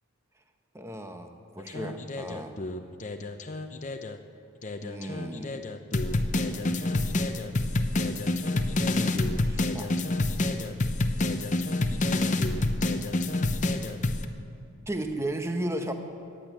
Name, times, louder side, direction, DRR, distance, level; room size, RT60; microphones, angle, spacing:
voice 1, 0.7-2.6 4.8-5.6 6.2-7.0 8.5-10.0 11.8-12.3 14.9-15.9, right 1 dB, 10° right, 6 dB, 0.9 m, -36 dB
sound 1, 1.6-4.2 4.6-14.3, left 2 dB, 35° left, 0.7 m, -28 dB
15.0 x 10.0 x 9.0 m, 2.5 s
head